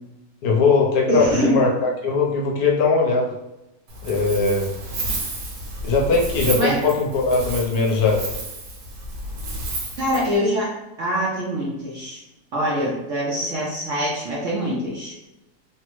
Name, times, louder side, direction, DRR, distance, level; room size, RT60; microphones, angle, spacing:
voice 1, 0.4-3.3 4.0-4.7 5.8-8.2, left 4 dB, 70° left, -1 dB, 1.1 m, -20 dB
voice 2, 1.1-1.6 6.5-6.8 10.0-10.7 11.0-12.2 12.5-15.1, equal, 60° right, -5 dB, 0.8 m, -24 dB
Wind, 3.9-10.4, right 1 dB, 90° right, 1.4 m, -31 dB
3.3 x 2.0 x 3.0 m, 0.94 s
omnidirectional pair, 1.9 m